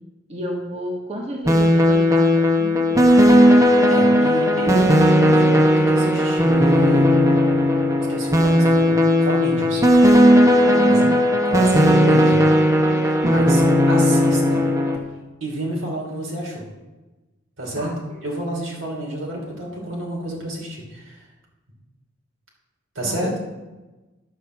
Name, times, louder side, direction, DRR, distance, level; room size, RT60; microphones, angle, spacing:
voice 1, 0.3-3.1 10.6-11.2 17.7-17.9 23.0-23.4, equal, 35° right, -1 dB, 1.4 m, -31 dB
sound 1, 1.5-15.0, equal, 15° right, 0.9 m, -16 dB
voice 2, 3.9-7.1 8.1-10.3 10.9-11.1 11.4-12.4 12.9-13.6 13.9-14.6 15.4-16.7 17.6-17.9 18.2-21.2 22.9-23.4, right 1 dB, 80° right, -1 dB, 2.9 m, -29 dB
9.6 x 6.2 x 7.2 m, 1.2 s
head